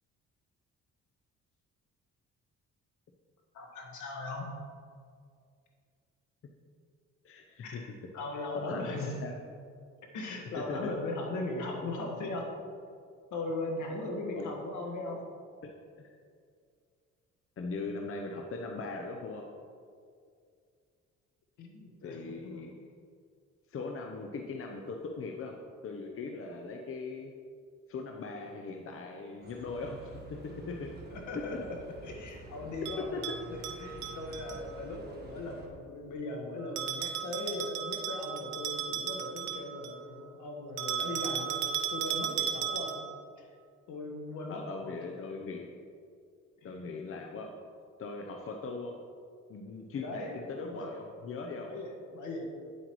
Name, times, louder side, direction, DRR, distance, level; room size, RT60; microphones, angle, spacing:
voice 1, 3.5-4.5 7.6-7.8 8.1-9.2 10.1-12.5 13.3-15.2 21.6-22.6 31.1-31.5 32.0-33.1 33.5-43.0 43.9-45.2 46.6-46.8 49.9-50.4 50.6-50.9 51.6-52.4, left 2 dB, 75° left, 1 dB, 1.7 m, -38 dB
voice 2, 7.2-8.0 8.5-9.4 10.6-10.9 14.3-14.5 15.6-16.1 17.6-19.4 22.0-22.7 23.7-25.6 25.8-27.3 27.9-31.0 31.3-31.6 32.8-33.4 44.5-45.7 46.6-47.5 48.0-48.9 49.5-51.7, left 4 dB, 45° left, 2 dB, 0.8 m, -40 dB
Bus, 29.4-35.7, right 2 dB, 35° right, 1.4 m, -49 dB
Bell, 32.8-34.6 36.8-40.0 40.8-43.2, right 9 dB, 85° right, 0.7 m, -35 dB
9.7 x 8.0 x 3.1 m, 2.2 s
cardioid pair, 90°, 30 cm